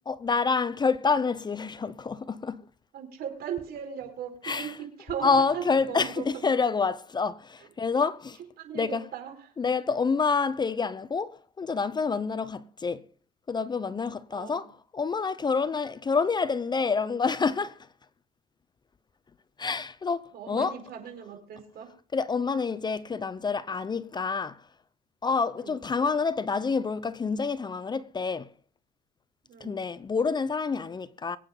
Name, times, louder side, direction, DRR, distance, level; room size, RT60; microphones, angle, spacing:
voice 1, 0.1-2.7 4.4-4.8 5.2-8.4 8.7-9.0 9.6-13.1 13.5-17.9 19.6-20.8 22.1-24.7 25.2-28.5 29.6-31.4, left 5 dB, 25° left, 0.7 m, -28 dB
voice 2, 2.9-6.5 8.6-9.5 14.3-14.7 20.3-21.9 25.5-25.8 29.4-29.8, right 8 dB, 65° right, 4.8 m, -38 dB
23.5 x 9.0 x 3.9 m
cardioid pair, 110°, 17 cm